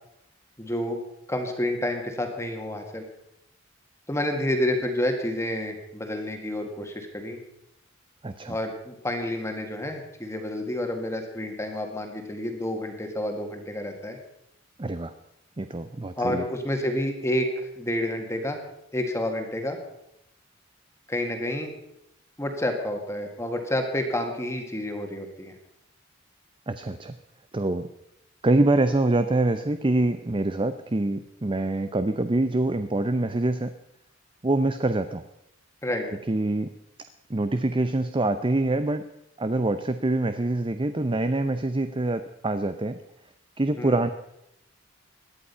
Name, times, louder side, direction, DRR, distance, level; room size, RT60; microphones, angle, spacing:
voice 1, 0.6-1.0 1.3-3.1 4.1-7.4 8.5-14.2 16.2-18.6 18.9-19.8 21.1-21.7 22.4-25.5 35.8-36.1 43.8-44.0, left 1 dB, 15° left, 4 dB, 2.0 m, -29 dB
voice 2, 8.2-8.6 14.8-15.1 15.6-16.4 26.7-27.1 27.5-27.9 28.4-33.7 34.4-35.2 36.3-36.7 37.3-39.0 39.4-43.0 43.6-44.1, right 2 dB, 25° right, 10 dB, 0.6 m, -25 dB
18.0 x 11.5 x 5.6 m, 0.81 s
head